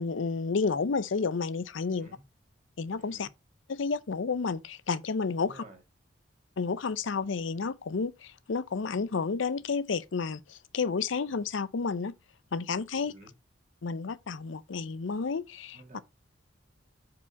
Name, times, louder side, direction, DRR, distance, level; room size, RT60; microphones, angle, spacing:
voice 1, 0.0-2.1 2.8-3.3 3.7-5.6 6.6-12.1 12.5-13.1 13.8-16.0, left 4 dB, 75° left, 0.6 m, -31 dB
voice 2, 12.9-13.3 15.7-16.0, right 2 dB, 40° right, 1.9 m, -52 dB
7.2 x 4.8 x 4.1 m
head